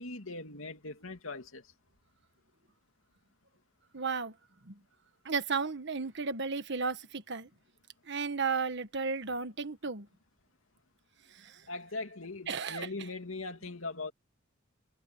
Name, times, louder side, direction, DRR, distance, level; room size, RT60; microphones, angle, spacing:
voice 1, 0.0-1.6 11.7-14.1, left 3 dB, 80° left, 2.6 m, -40 dB
voice 2, 3.9-4.3 4.7-4.8 5.2-7.5 8.1-10.1 12.5-12.9, right 5 dB, 60° right, 1.5 m, -33 dB
head